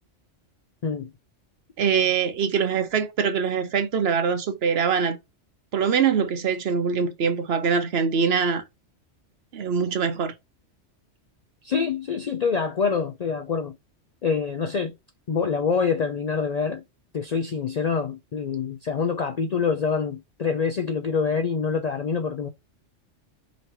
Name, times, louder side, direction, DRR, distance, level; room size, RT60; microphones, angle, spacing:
voice 1, 1.8-5.2 5.7-8.6 9.5-10.3, right 6 dB, 60° right, 0.9 m, -23 dB
voice 2, 11.6-13.8 14.2-14.9 15.3-16.8 17.1-22.5, left 5 dB, 60° left, 0.4 m, -26 dB
5.1 x 2.9 x 2.9 m
omnidirectional pair, 1.2 m